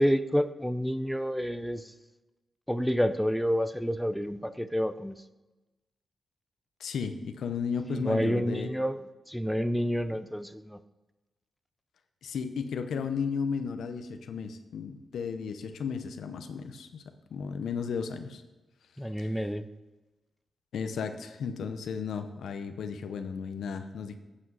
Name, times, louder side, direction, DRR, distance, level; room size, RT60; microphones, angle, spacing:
voice 1, 0.0-1.9 2.7-5.1 8.0-9.0 9.3-10.8 19.0-19.6, equal, ahead, 10 dB, 0.5 m, -29 dB
voice 2, 6.8-8.7 12.2-17.0 17.3-18.4 19.2-19.3 20.7-24.1, left 6 dB, 90° left, 8 dB, 0.8 m, -34 dB
8.6 x 7.5 x 5.5 m, 1.1 s
cardioid pair, 80°, 0 cm